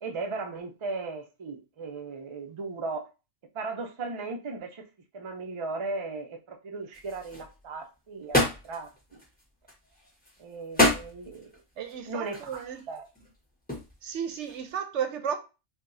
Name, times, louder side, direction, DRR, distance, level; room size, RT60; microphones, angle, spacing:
voice 1, 0.0-3.1 3.5-4.9 5.1-9.2 10.4-11.6 12.1-13.0, right 3 dB, 35° right, 0.5 m, -37 dB
sound 1, 6.9-14.8, left 1 dB, 10° left, 1.2 m, -31 dB
voice 2, 11.8-12.8 14.0-15.4, right 8 dB, 80° right, 0.9 m, -33 dB
4.7 x 2.3 x 2.6 m
omnidirectional pair, 1.2 m